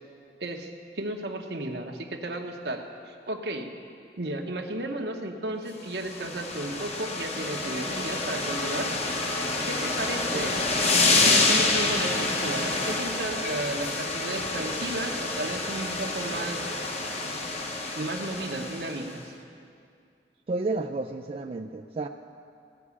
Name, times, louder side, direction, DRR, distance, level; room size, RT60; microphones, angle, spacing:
voice 1, 0.4-0.7 1.0-3.7 4.2-8.9 9.7-10.6 11.0-16.7 17.9-19.3, right 1 dB, 70° right, 4 dB, 1.1 m, -34 dB
sound 1, 5.9-19.1, left 3 dB, 35° left, 1.0 m, -27 dB
voice 2, 20.5-22.1, right 3 dB, 30° right, 4 dB, 0.3 m, -31 dB
17.0 x 6.1 x 8.4 m, 2.4 s
head